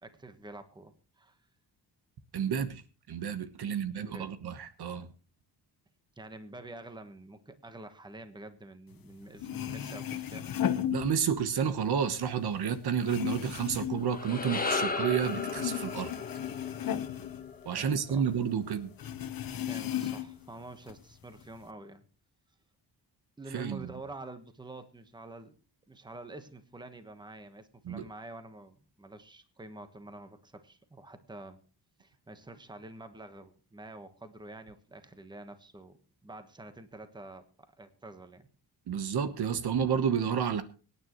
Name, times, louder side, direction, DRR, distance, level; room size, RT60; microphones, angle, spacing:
voice 1, 0.0-1.4 3.6-4.3 6.2-10.5 17.8-18.3 19.7-22.0 23.4-25.5 25.9-31.6 32.0-37.4 37.8-38.5, right 2 dB, 10° right, 9 dB, 1.2 m, -47 dB
voice 2, 2.3-2.8 3.1-5.1 10.9-16.1 17.6-18.9 23.5-23.9 27.8-28.0 38.9-40.6, right 7 dB, 65° right, 11 dB, 1.2 m, -30 dB
sound 1, 9.1-9.2 9.4-11.6 11.9-14.9 15.2-18.2 18.4-18.5 19.0-20.5 20.9-21.6, left 10 dB, 55° left, 1.1 m, -35 dB
sound 2, 13.9-18.4, left 4 dB, 20° left, 1.3 m, -35 dB
24.5 x 9.6 x 3.1 m, 0.37 s
wide cardioid pair, 135°, 42 cm